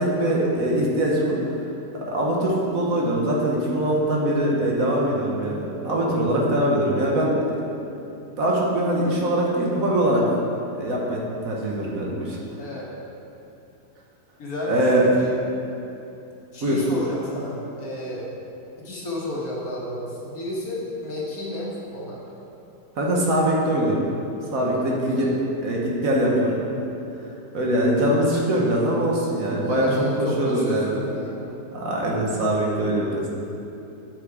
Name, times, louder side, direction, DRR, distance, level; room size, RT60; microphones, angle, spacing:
voice 1, 0.0-1.4 2.0-7.4 8.4-10.2 10.7-11.2 11.4-12.4 14.7-15.0 16.6-16.8 23.0-24.0 24.5-25.3 25.6-26.6 27.5-31.0 31.7-33.2, right 1 dB, 60° right, -3 dB, 1.5 m, -22 dB
voice 2, 14.4-15.3 16.5-18.3 18.8-22.2 24.7-25.3 29.6-31.5, left 1 dB, 60° left, -4 dB, 1.9 m, -32 dB
9.0 x 5.9 x 4.8 m, 2.8 s
omnidirectional pair, 1.8 m